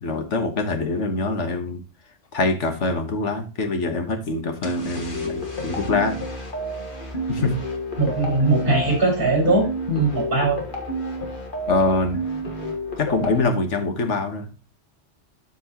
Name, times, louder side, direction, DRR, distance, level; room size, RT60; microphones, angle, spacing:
voice 1, 0.0-1.8 2.3-6.2 7.3-7.5 11.7-12.2 13.0-14.5, left 3 dB, 75° left, 6 dB, 1.6 m, -24 dB
sound 1, 4.6-13.4, right 1 dB, 45° left, 1.7 m, -30 dB
voice 2, 8.0-10.6, right 2 dB, 45° right, -1 dB, 5.4 m, -20 dB
12.5 x 4.7 x 3.0 m, 0.32 s
omnidirectional pair, 1.2 m